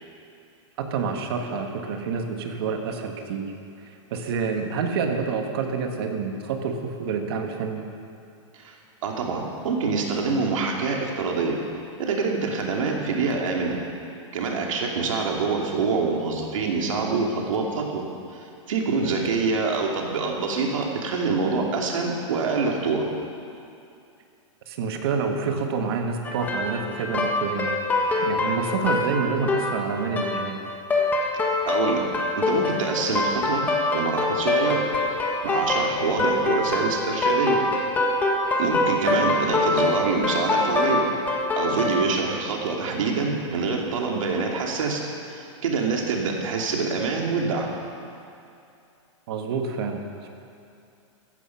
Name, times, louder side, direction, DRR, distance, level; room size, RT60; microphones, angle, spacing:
voice 1, 0.8-3.5 3.8-7.8 24.7-27.7 28.2-30.6 36.2-36.3 39.0-39.3 49.3-50.3, right 5 dB, 50° right, 4 dB, 1.8 m, -28 dB
voice 2, 9.0-11.6 12.0-13.8 14.3-18.0 18.3-23.0 31.7-32.0 32.4-33.6 33.9-34.8 35.4-37.6 38.6-41.0 41.6-45.0 45.3-47.7, right 4 dB, 85° right, 0 dB, 2.8 m, -25 dB
sound 1, 26.2-42.0, left 2 dB, 10° left, 1.5 m, -24 dB
16.0 x 14.0 x 5.9 m, 2.6 s
supercardioid pair, 170°, 16 cm